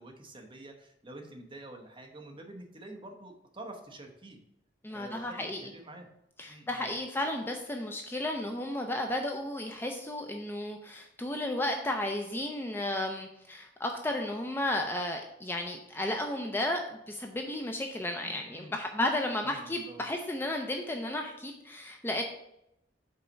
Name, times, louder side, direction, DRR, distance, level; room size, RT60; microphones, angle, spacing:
voice 1, 0.0-4.4 4.9-5.4 5.6-6.1 6.4-6.9 18.2-18.7 19.4-20.0, right 2 dB, 25° right, 3 dB, 1.0 m, -47 dB
voice 2, 4.8-5.6 6.4-22.2, left 1 dB, 10° left, 3 dB, 0.5 m, -33 dB
5.5 x 4.1 x 5.3 m, 0.80 s
head